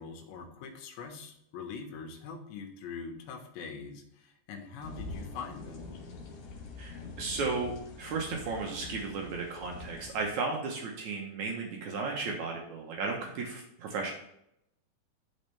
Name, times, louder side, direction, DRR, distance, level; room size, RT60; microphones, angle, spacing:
voice 1, 0.0-5.9, left 5 dB, 85° left, 4 dB, 3.3 m, -43 dB
sound 1, 4.8-10.3, left 3 dB, 60° left, 3.2 m, -45 dB
voice 2, 6.8-14.1, right 4 dB, 85° right, 0 dB, 1.7 m, -34 dB
12.0 x 4.3 x 3.4 m, 0.76 s
omnidirectional pair, 5.0 m